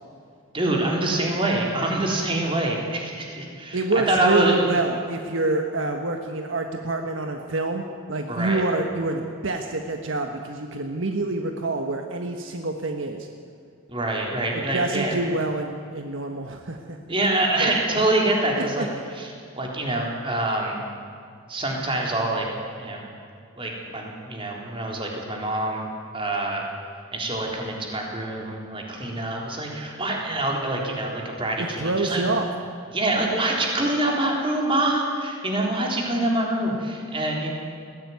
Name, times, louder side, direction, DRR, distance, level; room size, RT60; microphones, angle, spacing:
voice 1, 0.5-3.8 4.1-4.7 8.3-8.6 13.9-15.2 17.1-18.9 19.1-19.3 19.6-20.8 21.5-22.5 22.8-23.0 23.6-25.9 26.1-26.7 27.1-32.2 32.9-37.5, right 1 dB, 25° right, -1 dB, 3.8 m, -25 dB
voice 2, 3.7-13.3 14.5-17.0 17.6-18.0 18.6-18.9 31.6-32.5, right 2 dB, 65° right, 4 dB, 1.4 m, -27 dB
20.5 x 15.0 x 9.5 m, 2.4 s
head